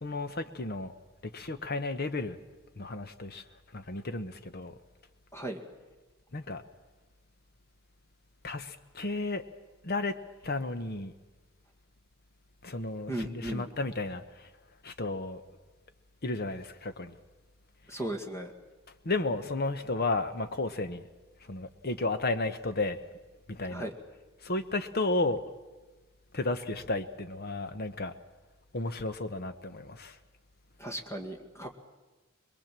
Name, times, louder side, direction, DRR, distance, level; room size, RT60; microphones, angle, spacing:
voice 1, 0.0-0.9 1.2-2.4 2.8-3.4 3.7-4.7 6.3-6.6 8.4-9.4 9.8-10.1 10.4-11.1 12.6-14.5 14.8-15.4 16.2-17.2 17.9-18.0 19.0-21.1 21.4-23.0 23.5-23.9 24.4-25.4 26.3-28.1 28.7-30.2, left 2 dB, 45° left, 1.1 m, -33 dB
voice 2, 13.1-13.7 17.9-18.5 23.7-23.9 30.8-31.7, right 1 dB, 15° left, 1.9 m, -36 dB
22.5 x 22.0 x 7.6 m
head